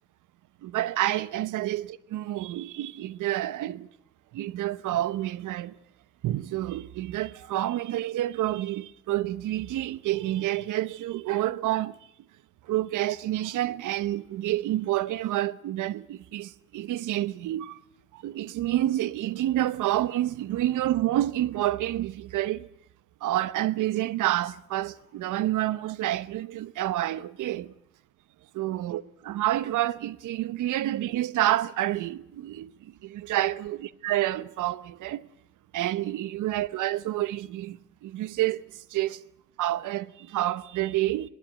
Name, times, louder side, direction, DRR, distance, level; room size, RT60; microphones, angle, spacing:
voice 1, 0.6-3.9 4.3-5.8 6.2-12.0 12.6-17.8 18.1-22.7 23.2-27.7 28.5-32.7 33.0-35.3 35.7-39.2 39.6-41.3, right 14 dB, 85° right, 1.1 m, -28 dB
22.0 x 20.5 x 7.5 m
cardioid pair, 90°, 30 cm